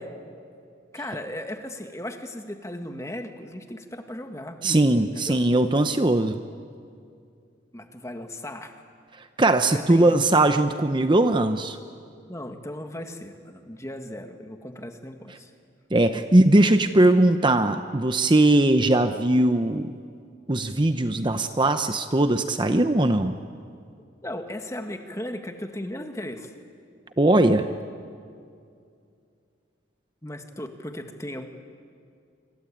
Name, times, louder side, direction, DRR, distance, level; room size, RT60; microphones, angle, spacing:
voice 1, 0.9-4.6 5.2-5.4 7.7-8.7 9.7-10.2 12.3-15.5 24.2-26.5 30.2-31.5, left 1 dB, 15° left, 6 dB, 1.8 m, -36 dB
voice 2, 4.6-6.4 9.4-11.8 15.9-19.9 20.5-23.3 27.2-27.7, right 1 dB, 25° right, 8 dB, 0.8 m, -20 dB
26.5 x 25.5 x 8.7 m, 2.4 s
head